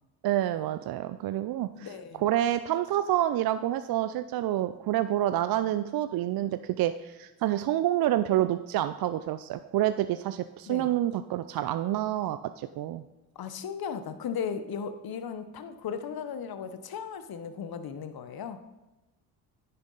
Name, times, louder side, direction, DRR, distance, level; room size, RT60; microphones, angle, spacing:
voice 1, 0.2-1.9 2.1-13.0, right 13 dB, 50° right, 11 dB, 0.5 m, -28 dB
voice 2, 1.7-2.2 10.7-10.9 13.3-18.6, left 7 dB, 50° left, 10 dB, 1.0 m, -36 dB
9.9 x 6.9 x 3.9 m, 1.0 s
hypercardioid pair, 55°, 48 cm